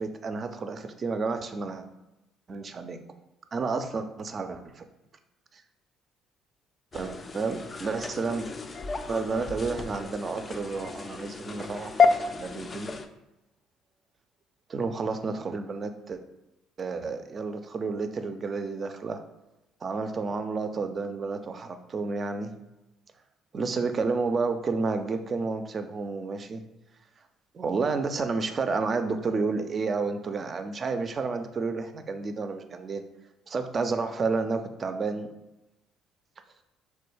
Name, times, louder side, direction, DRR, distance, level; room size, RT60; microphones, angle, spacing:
voice 1, 0.0-1.9 2.5-3.0 3.5-4.8 5.5-5.6 6.9-8.5 9.1-13.0 14.7-16.2 16.8-19.2 19.8-22.5 23.5-26.6 27.5-33.0 33.5-35.3, right 4 dB, 40° right, 8 dB, 0.3 m, -31 dB
sound 1, 6.9-13.1, left 5 dB, 35° left, 0.3 m, -30 dB
3.1 x 2.2 x 3.2 m, 0.97 s
hypercardioid pair, 50°, 0 cm